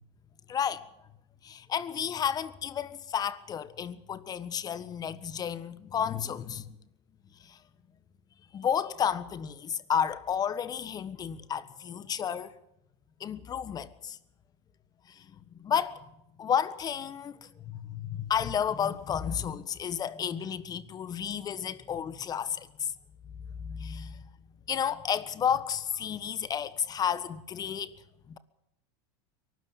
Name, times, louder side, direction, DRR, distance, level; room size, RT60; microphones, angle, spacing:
voice 1, 0.5-0.9 1.4-6.8 7.4-7.6 8.5-12.5 13.2-14.2 15.0-16.0 16.4-22.9 23.6-24.2 24.7-27.9 28.3-28.4, left 8 dB, 30° left, 1.4 m, -32 dB
23.0 x 12.5 x 9.4 m
supercardioid pair, 120°, 14 cm